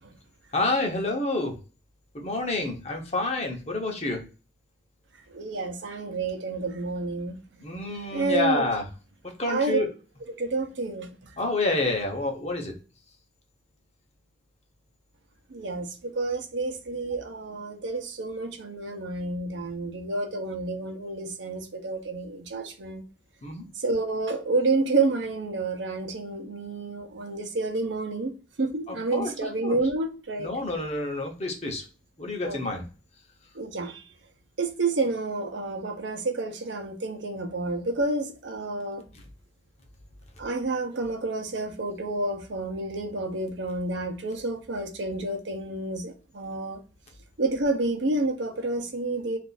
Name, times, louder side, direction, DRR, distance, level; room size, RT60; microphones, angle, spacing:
voice 1, 0.5-1.6 2.1-4.2 7.6-8.8 9.4-9.9 11.4-12.7 23.4-23.6 28.9-29.8 30.4-31.8 32.2-32.8, left 2 dB, 35° left, 0.7 m, -28 dB
voice 2, 5.3-7.4 8.1-8.7 9.5-9.8 10.4-11.1 15.5-23.0 23.8-28.3 28.6-30.5 32.4-32.6 33.5-34.0 34.6-39.0 40.4-46.8 47.4-49.4, right 3 dB, 75° right, 0.7 m, -29 dB
2.5 x 2.4 x 3.9 m
head